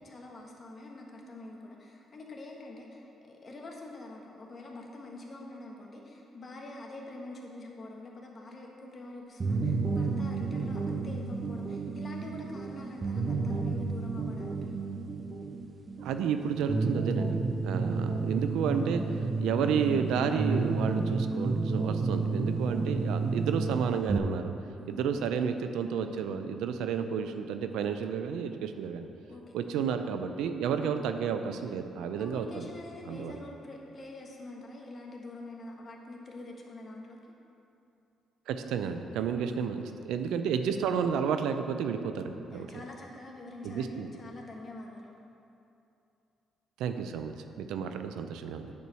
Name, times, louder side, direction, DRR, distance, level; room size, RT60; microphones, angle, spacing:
voice 1, 0.0-14.7 18.0-18.2 24.8-25.0 29.3-29.6 32.2-37.2 39.3-39.8 42.5-45.1, left 2 dB, 40° left, 0 dB, 1.3 m, -45 dB
sound 1, 9.4-24.2, right 3 dB, 35° right, 0.5 m, -31 dB
voice 2, 16.0-24.5 24.9-29.1 29.5-32.7 33.0-33.4 38.5-42.7 43.6-44.1 46.8-48.7, right 7 dB, 90° right, 8 dB, 0.5 m, -31 dB
8.4 x 4.5 x 6.3 m, 2.8 s
cardioid pair, 90°, 0 cm